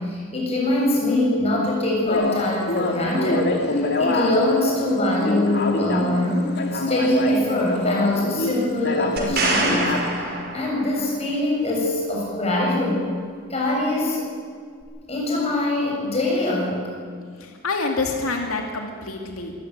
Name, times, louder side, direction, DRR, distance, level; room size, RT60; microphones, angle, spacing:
voice 1, 0.0-6.5 6.7-13.0 13.5-14.3 15.1-16.9, left 1 dB, 30° left, -2 dB, 7.2 m, -23 dB
sound 1, 2.1-10.1, left 2 dB, 50° left, 2.8 m, -26 dB
sound 2, 9.2-11.1 14.8-14.9, right 3 dB, 50° right, 5.4 m, -25 dB
voice 2, 17.4-19.5, left 3 dB, 90° left, 2 dB, 2.5 m, -27 dB
24.5 x 14.5 x 9.5 m, 2.1 s
head